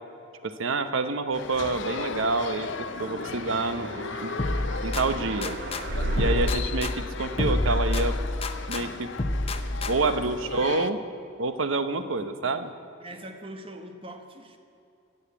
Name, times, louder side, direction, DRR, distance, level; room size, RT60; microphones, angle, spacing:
voice 1, 0.4-4.3 4.8-5.6 6.1-8.2 8.7-9.1 9.9-11.0 11.4-12.7, right 3 dB, 80° right, 10 dB, 0.9 m, -28 dB
sound 1, 1.3-10.9, left 5 dB, 65° left, 0.6 m, -37 dB
sound 2, 2.0-6.5, right 1 dB, 50° right, 1.0 m, -34 dB
voice 2, 3.2-4.3 10.0-10.5 12.0-12.6 13.0-14.6, right 1 dB, 25° right, 5 dB, 1.1 m, -45 dB
sound 3, 4.4-5.8 6.2-8.8 9.2-10.2, left 1 dB, 30° left, 0.7 m, -28 dB
15.0 x 8.1 x 8.5 m, 2.7 s
head